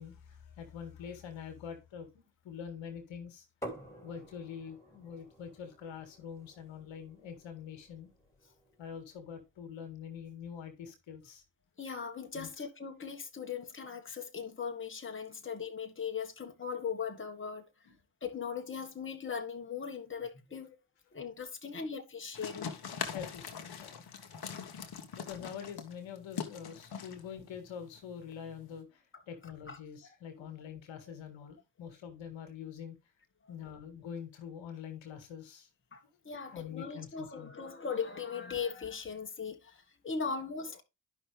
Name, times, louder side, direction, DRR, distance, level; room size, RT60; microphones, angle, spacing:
voice 1, 0.0-2.1 2.4-3.4 4.0-8.1 8.8-11.4 12.3-12.5 17.9-18.0 23.1-24.0 25.1-33.0 33.5-35.7 36.5-37.5, left 8 dB, 65° left, 1.9 m, -45 dB
sound 1, 3.6-9.3, right 1 dB, 5° left, 3.1 m, -50 dB
voice 2, 11.8-17.6 18.2-20.8 21.1-22.7 24.3-24.4 29.1-30.5 33.4-33.5 35.9-40.8, left 6 dB, 25° left, 1.7 m, -39 dB
sound 2, 22.3-28.8, left 6 dB, 50° left, 1.5 m, -42 dB
11.0 x 5.6 x 3.4 m
hypercardioid pair, 40°, 49 cm